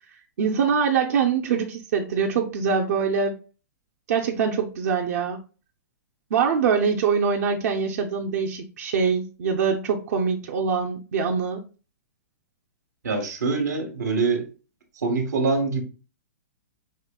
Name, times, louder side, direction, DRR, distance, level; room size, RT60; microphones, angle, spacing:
voice 1, 0.4-3.4 4.1-5.4 6.3-11.6, right 6 dB, 65° right, 1 dB, 0.6 m, -24 dB
voice 2, 13.0-14.5 15.0-15.8, right 4 dB, 85° right, 5 dB, 1.2 m, -24 dB
5.6 x 2.8 x 2.2 m, 0.36 s
hypercardioid pair, 135°, 9 cm